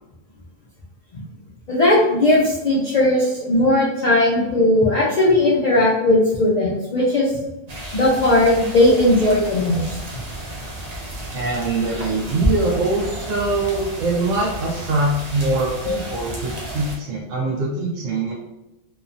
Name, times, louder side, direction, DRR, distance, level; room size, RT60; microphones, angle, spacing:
voice 1, 1.7-7.3 7.9-10.0 15.8-16.0, left 1 dB, 70° left, -6 dB, 0.4 m, -17 dB
sound 1, 7.7-17.0, right 1 dB, 50° right, 0.5 m, -31 dB
voice 2, 11.3-18.3, right 2 dB, 75° right, -4 dB, 0.9 m, -23 dB
3.0 x 2.1 x 2.4 m, 0.95 s
omnidirectional pair, 1.4 m